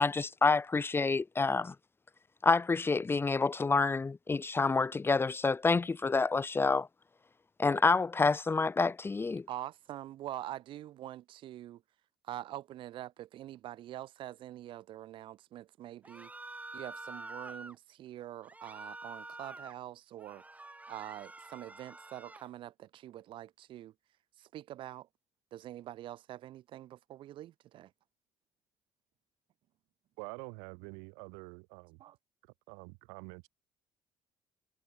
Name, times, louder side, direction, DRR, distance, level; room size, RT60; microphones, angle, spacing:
voice 1, 0.0-1.7 2.4-6.9 7.6-9.5, left 4 dB, 25° left, 0.9 m, -28 dB
voice 2, 9.5-11.8 12.2-16.3 16.7-20.4 20.9-23.9 24.4-25.1 25.5-27.9 32.0-32.2, right 13 dB, 65° right, 2.9 m, -45 dB
sound 1, 16.0-17.8 18.4-19.8 20.2-22.5, right 2 dB, 15° right, 5.1 m, -47 dB
voice 3, 30.2-32.0 32.7-33.5, right 38 dB, 85° right, 2.3 m, -46 dB
hypercardioid pair, 60°, 9 cm